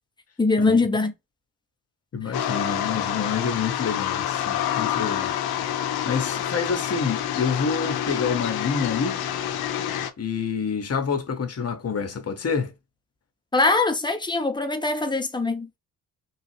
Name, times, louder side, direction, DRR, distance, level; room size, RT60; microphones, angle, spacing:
voice 1, 0.4-1.1 13.5-15.7, left 3 dB, 10° left, 0.7 m, -22 dB
voice 2, 2.1-5.7 6.0-9.2 10.2-12.7, left 5 dB, 35° left, 0.9 m, -28 dB
sound 1, 2.3-10.1, left 10 dB, 60° left, 0.6 m, -27 dB
3.1 x 2.4 x 3.1 m
hypercardioid pair, 45°, 42 cm